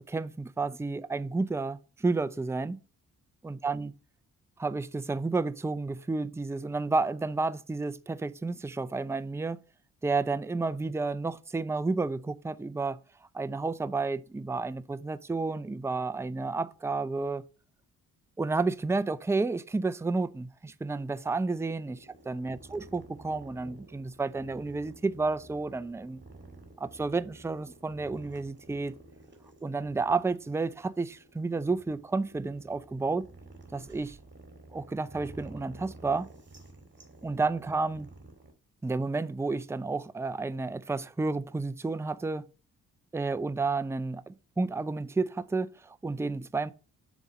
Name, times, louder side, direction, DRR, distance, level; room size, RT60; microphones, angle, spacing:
voice 1, 0.0-2.8 3.4-3.9 4.6-9.6 10.0-13.0 13.3-17.4 18.4-22.0 22.3-26.2 26.8-28.9 29.6-33.2 33.7-34.2 34.7-36.3 37.2-38.1 38.8-42.5 43.1-46.7, right 3 dB, 10° right, 0.5 m, -31 dB
sound 1, 20.8-38.5, right 2 dB, 30° right, 2.0 m, -52 dB
7.1 x 4.2 x 5.1 m
supercardioid pair, 55°, 36 cm